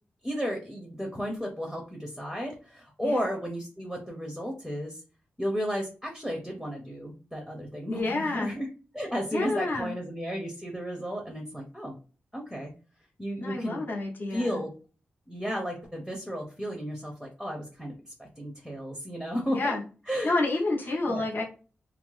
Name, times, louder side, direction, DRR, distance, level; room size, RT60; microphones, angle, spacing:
voice 1, 0.2-5.0 5.4-8.7 8.9-12.0 12.3-12.7 13.2-13.9 14.3-14.7 15.3-17.9 18.2-19.7 20.1-20.3 21.1-21.3, equal, ahead, 0 dB, 0.7 m, -33 dB
voice 2, 7.9-8.5 9.3-9.9 13.4-14.6 19.5-19.8 20.2-21.4, left 2 dB, 45° left, -1 dB, 0.8 m, -29 dB
2.7 x 2.0 x 3.1 m, 0.34 s
wide cardioid pair, 100°, 4 cm